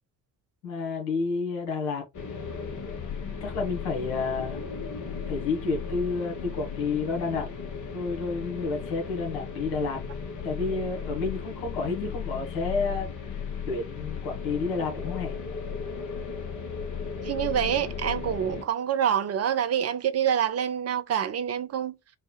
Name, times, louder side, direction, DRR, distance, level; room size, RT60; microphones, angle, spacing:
voice 1, 0.6-2.1 3.4-4.6 5.3-7.5 7.9-10.0 10.4-15.4, left 4 dB, 70° left, 1.9 m, -30 dB
sound 1, 2.1-18.6, left 6 dB, 40° left, 1.4 m, -35 dB
voice 2, 17.2-22.0, right 9 dB, 35° right, 0.7 m, -26 dB
4.2 x 2.4 x 4.0 m
figure-of-eight pair, 45°, 45 cm